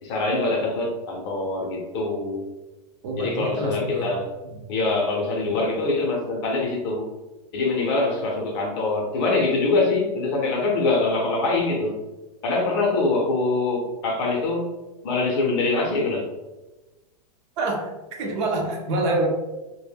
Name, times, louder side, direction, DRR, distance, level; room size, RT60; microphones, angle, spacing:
voice 1, 0.0-2.5 3.2-4.3 4.7-7.1 7.5-12.0 12.4-14.7 15.0-16.3, left 3 dB, 40° left, 0 dB, 0.6 m, -24 dB
voice 2, 3.0-4.1 4.6-4.7 17.6-17.9 18.2-19.3, right 2 dB, 45° right, 1 dB, 0.6 m, -26 dB
2.1 x 2.1 x 3.4 m, 1.1 s
supercardioid pair, 155°, 20 cm